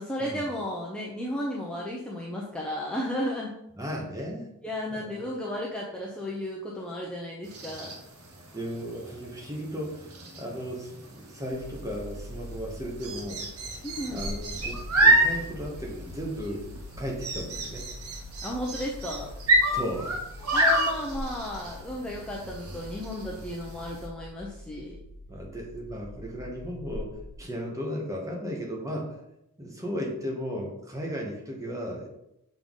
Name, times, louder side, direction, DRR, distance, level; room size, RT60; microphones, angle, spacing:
voice 1, 0.0-3.5 4.6-7.9 13.8-14.3 18.4-19.3 20.5-25.0, left 1 dB, 5° left, -4 dB, 0.6 m, -33 dB
voice 2, 3.8-4.5 4.9-5.2 8.5-10.1 10.3-13.4 13.7-13.8 14.1-16.6 17.0-18.0 19.7-20.2 25.3-29.2 29.6-32.1, equal, 15° right, 0 dB, 1.1 m, -35 dB
sound 1, 7.4-24.1, right 1 dB, 75° right, 1.1 m, -29 dB
sound 2, 11.5-27.4, left 1 dB, 80° left, 0.7 m, -43 dB
6.8 x 3.7 x 3.7 m, 0.81 s
head